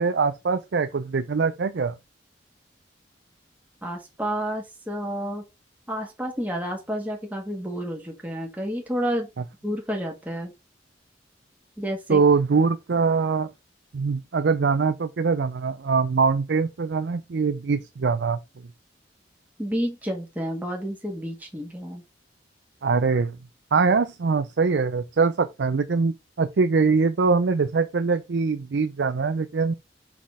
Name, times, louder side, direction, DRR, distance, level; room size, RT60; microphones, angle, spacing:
voice 1, 0.0-1.9 12.1-13.5 13.9-18.4 22.8-23.4 23.7-29.7, right 4 dB, 65° right, 0.5 m, -23 dB
voice 2, 3.8-5.4 5.9-9.3 9.6-10.5 11.8-12.2 19.6-22.0, equal, 10° right, 1.5 m, -30 dB
6.0 x 4.1 x 4.7 m
head